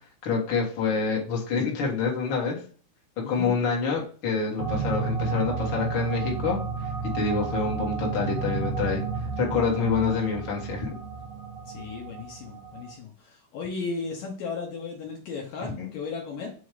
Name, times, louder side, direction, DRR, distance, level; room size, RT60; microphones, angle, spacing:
voice 1, 0.2-2.6 3.3-6.9 7.1-9.0 9.4-10.9 15.8-15.9, left 5 dB, 50° left, -2 dB, 1.6 m, -27 dB
voice 2, 3.2-3.5 11.7-16.5, left 4 dB, 70° left, 0 dB, 2.2 m, -35 dB
sound 1, 4.6-12.9, right 5 dB, 65° right, 1.7 m, -32 dB
7.1 x 2.8 x 4.8 m, 0.42 s
omnidirectional pair, 4.6 m